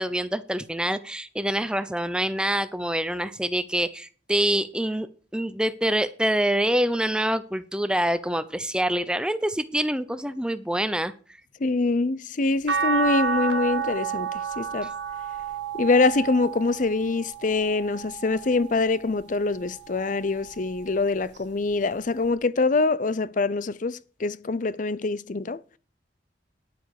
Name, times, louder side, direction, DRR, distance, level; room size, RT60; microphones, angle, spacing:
voice 1, 0.0-5.1 5.3-11.1 14.8-14.9, right 1 dB, 5° right, 0.7 m, -26 dB
voice 2, 11.6-14.9 15.7-25.6, left 3 dB, 45° left, 0.5 m, -24 dB
sound 1, 12.7-19.0 19.5-20.9 22.3-22.4, right 6 dB, 85° right, 1.6 m, -31 dB
10.5 x 9.2 x 4.9 m
head